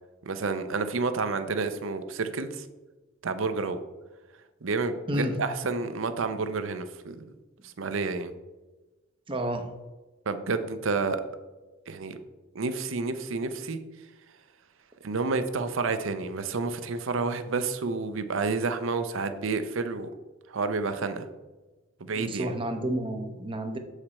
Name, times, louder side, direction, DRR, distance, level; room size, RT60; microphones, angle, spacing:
voice 1, 0.2-2.7 3.2-3.8 4.6-7.2 7.6-8.3 10.3-11.2 11.9-12.2 12.5-13.8 15.0-20.1 20.5-21.3 22.1-22.5, right 4 dB, 65° right, 10 dB, 0.6 m, -30 dB
voice 2, 5.1-5.4 9.3-9.7 22.1-23.8, right 1 dB, 25° right, 6 dB, 0.7 m, -30 dB
7.3 x 4.9 x 4.2 m, 1.2 s
head